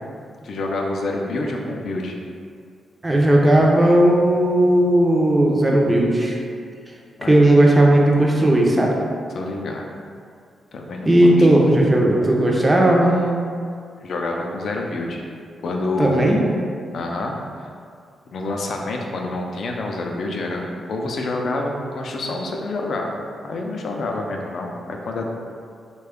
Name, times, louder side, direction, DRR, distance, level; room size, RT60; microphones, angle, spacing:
voice 1, 0.4-2.1 7.2-7.4 9.3-9.9 10.7-11.5 14.0-15.2 15.6-16.3 16.9-17.7 18.3-23.1 23.4-25.3, left 2 dB, 55° left, 1 dB, 0.4 m, -27 dB
voice 2, 3.0-6.4 7.3-8.9 11.0-13.2 16.0-16.4, right 1 dB, 15° right, -1 dB, 0.4 m, -15 dB
3.3 x 2.2 x 3.5 m, 2.2 s
wide cardioid pair, 140°, 0 cm